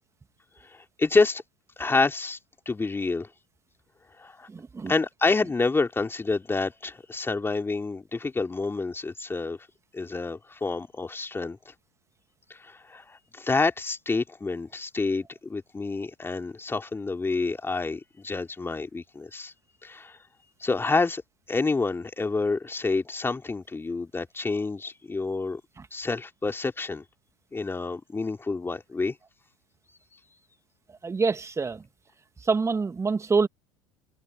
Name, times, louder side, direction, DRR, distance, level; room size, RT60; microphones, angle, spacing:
voice 1, 0.7-1.4 1.8-2.4 2.6-3.3 4.2-4.5 4.9-9.6 9.9-11.7 12.6-19.5 19.8-20.2 20.6-21.2 21.5-25.6 25.9-27.0 27.5-29.1, left 3 dB, 15° left, 3.5 m, -28 dB
voice 2, 4.5-4.9 25.8-25.9 31.0-31.8 32.4-33.5, right 4 dB, 20° right, 2.2 m, -26 dB
hypercardioid pair, 75°, 14 cm